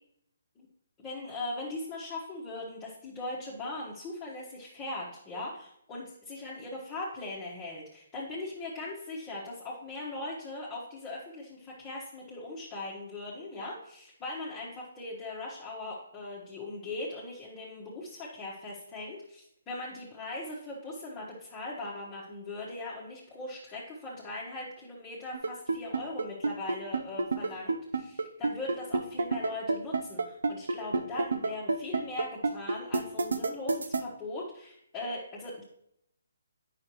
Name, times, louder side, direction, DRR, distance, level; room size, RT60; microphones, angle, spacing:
voice 1, 1.0-35.7, left 2 dB, 15° left, -6 dB, 1.3 m, -40 dB
sound 1, 25.3-34.0, right 3 dB, 75° right, 0.6 m, -28 dB
8.5 x 5.7 x 3.1 m, 0.74 s
hypercardioid pair, 145°, 0 cm